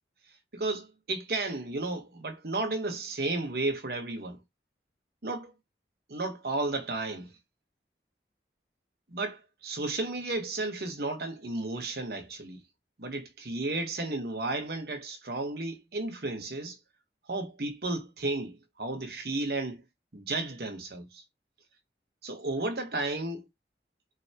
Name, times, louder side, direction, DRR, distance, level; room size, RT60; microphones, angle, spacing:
voice 1, 0.5-4.4 5.2-5.5 6.1-7.3 9.1-12.6 13.0-16.8 17.3-19.8 20.1-21.2 22.2-23.4, right 2 dB, 60° right, 1.1 m, -33 dB
4.0 x 3.4 x 2.8 m
head